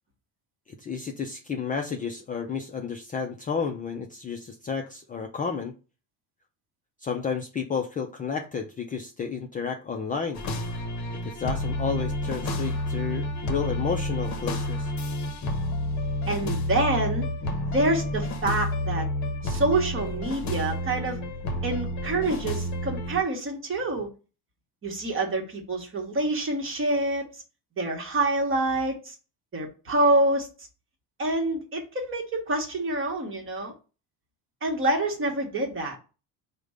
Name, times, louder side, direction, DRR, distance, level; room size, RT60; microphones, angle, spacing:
voice 1, 0.8-5.7 7.0-10.4 11.2-14.9, left 6 dB, 20° left, 0.4 m, -31 dB
sound 1, 10.3-23.2, left 1 dB, 45° left, 0.8 m, -30 dB
voice 2, 16.3-17.3 17.7-19.1 19.4-21.2 21.6-24.1 24.8-27.3 27.8-29.1 29.5-30.5 31.2-33.7 34.6-36.0, right 2 dB, 30° right, 1.2 m, -26 dB
5.0 x 2.2 x 4.9 m
cardioid pair, 140°, 40 cm